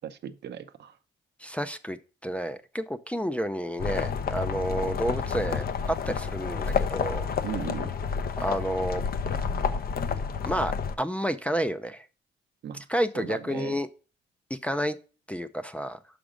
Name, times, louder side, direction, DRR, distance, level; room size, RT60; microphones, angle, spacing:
voice 1, 0.0-1.0 7.4-7.9 12.6-12.8 13.1-13.8, right 9 dB, 60° right, 0.7 m, -37 dB
voice 2, 1.4-7.3 8.4-9.0 10.5-12.0 12.9-13.9 14.5-15.0 15.3-16.0, equal, 5° left, 0.5 m, -30 dB
sound 1, 3.8-11.0, left 6 dB, 50° left, 0.7 m, -30 dB
6.0 x 5.1 x 5.0 m
cardioid pair, 90°, 20 cm